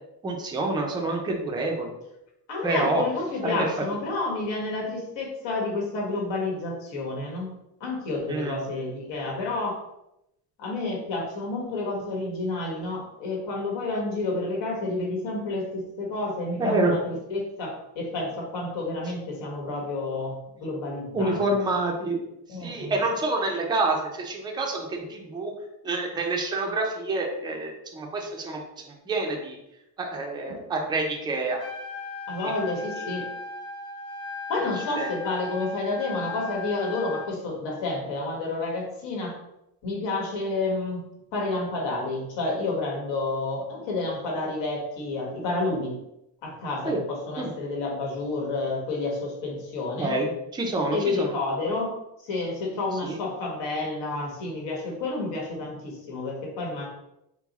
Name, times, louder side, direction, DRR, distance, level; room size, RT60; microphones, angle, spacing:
voice 1, 0.2-1.9 2.6-3.0 3.4-3.5 8.3-8.6 16.6-16.9 21.1-22.2 22.6-25.5 25.8-28.6 29.1-29.6 30.0-31.6 35.0-35.1 46.8-47.0 47.4-47.5 50.0-51.3 53.0-53.2, right 2 dB, 10° right, 1 dB, 0.3 m, -27 dB
voice 2, 2.5-7.5 7.8-9.8 10.6-21.6 22.5-23.0 32.3-33.3 34.5-39.4 39.8-41.0 41.3-45.9 46.4-50.2 50.9-56.9, left 2 dB, 80° left, -1 dB, 1.5 m, -30 dB
Trumpet, 31.5-37.3, left 4 dB, 35° left, 0.7 m, -37 dB
4.5 x 2.0 x 4.0 m, 0.84 s
cardioid pair, 175°, 43 cm